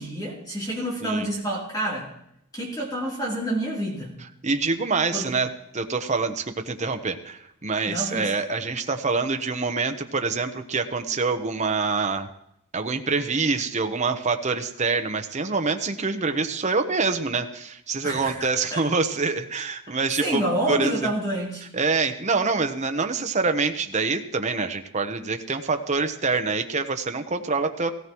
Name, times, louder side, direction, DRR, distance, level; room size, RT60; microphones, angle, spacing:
voice 1, 0.0-2.1 2.5-4.1 5.1-5.3 7.9-8.3 18.0-18.8 19.9-21.7, right 1 dB, 20° left, -5 dB, 3.3 m, -28 dB
voice 2, 4.4-5.5 5.7-12.3 12.7-20.4 20.7-21.1 21.7-27.9, right 4 dB, 35° right, 7 dB, 0.9 m, -26 dB
17.5 x 16.0 x 3.1 m, 0.77 s
head